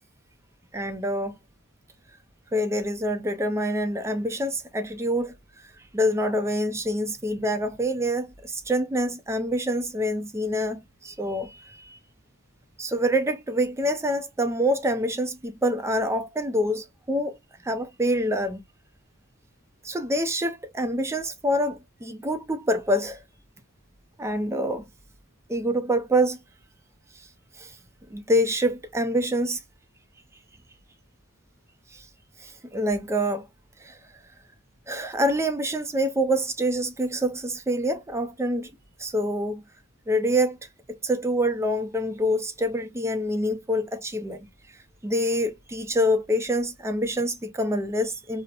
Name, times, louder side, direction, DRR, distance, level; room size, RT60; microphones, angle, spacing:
voice 1, 0.7-1.3 2.5-5.3 5.9-12.0 12.8-17.4 17.6-18.6 19.8-23.2 24.2-24.8 25.5-26.4 27.6-27.7 28.1-29.6 31.9-32.1 32.4-33.5 33.8-34.0 34.9-38.7 39.0-39.6 40.1-40.6 41.0-44.5 45.0-48.4, equal, 15° right, 0.4 m, -26 dB
2.8 x 2.0 x 2.3 m
head